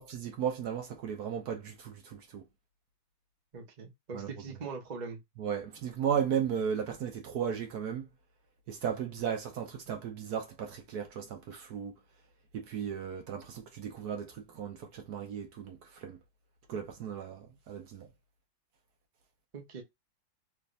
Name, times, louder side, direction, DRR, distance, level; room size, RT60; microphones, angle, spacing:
voice 1, 0.0-2.4 4.1-4.3 5.4-8.1 8.7-11.9 12.5-16.2 16.7-18.1, right 8 dB, 65° right, 1.2 m, -35 dB
voice 2, 3.5-5.2 19.5-19.8, right 4 dB, 35° right, 0.7 m, -42 dB
3.5 x 3.1 x 2.5 m
omnidirectional pair, 2.0 m